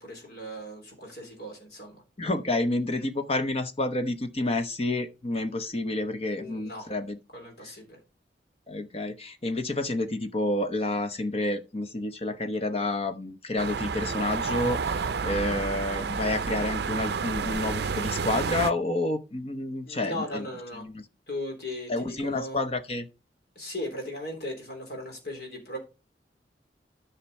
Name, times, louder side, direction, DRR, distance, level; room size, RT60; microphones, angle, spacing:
voice 1, 0.0-2.0 6.3-6.9 7.3-8.0 19.8-20.9 21.3-22.7 23.6-25.8, left 1 dB, 60° left, 3.6 m, -37 dB
voice 2, 2.2-7.2 8.7-20.5 20.7-21.0 21.9-23.1, left 2 dB, 35° left, 0.8 m, -29 dB
sound 1, 13.6-18.7, right 5 dB, 65° right, 0.5 m, -30 dB
10.5 x 5.8 x 4.2 m
head